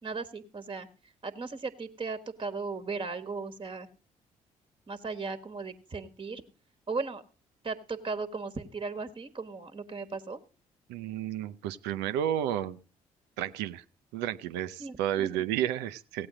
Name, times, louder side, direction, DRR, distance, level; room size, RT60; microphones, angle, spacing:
voice 1, 0.0-0.9 1.2-3.9 4.9-6.4 6.9-7.2 7.6-10.4 14.8-15.3, right 4 dB, 30° right, 10 dB, 1.3 m, -36 dB
voice 2, 10.9-12.8 13.4-13.8 14.1-16.3, right 11 dB, 75° right, 12 dB, 0.6 m, -31 dB
16.5 x 8.6 x 4.9 m, 0.35 s
hypercardioid pair, 45°, 18 cm